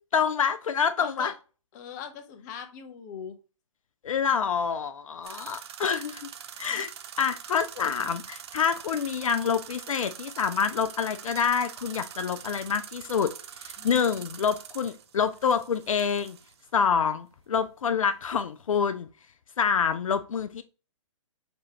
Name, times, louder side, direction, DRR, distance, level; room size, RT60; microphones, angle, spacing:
voice 1, 0.1-1.3 4.0-6.3 6.6-6.9 7.2-13.3 13.6-16.4 16.7-19.1 19.6-20.6, left 6 dB, 80° left, 0.4 m, -27 dB
voice 2, 1.0-1.3 1.7-3.4 13.8-14.2, left 7 dB, 35° left, 0.7 m, -40 dB
sound 1, 5.2-16.7, right 9 dB, 55° right, 0.5 m, -44 dB
5.4 x 2.9 x 2.8 m
hypercardioid pair, 130°, 17 cm